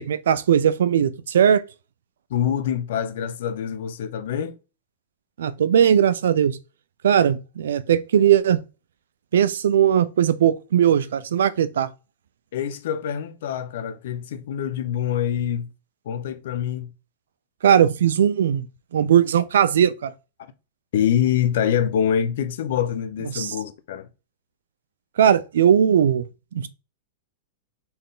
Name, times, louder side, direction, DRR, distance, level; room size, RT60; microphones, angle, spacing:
voice 1, 0.0-1.6 5.4-6.6 7.0-8.6 9.3-11.9 17.6-18.6 18.9-20.1 23.3-23.5 25.2-26.2 26.5-26.7, right 9 dB, 85° right, 0.4 m, -19 dB
voice 2, 2.3-4.6 12.5-15.7 16.1-16.9 20.9-24.1, left 9 dB, 70° left, 0.7 m, -25 dB
4.3 x 3.4 x 3.7 m
hypercardioid pair, 140°, 0 cm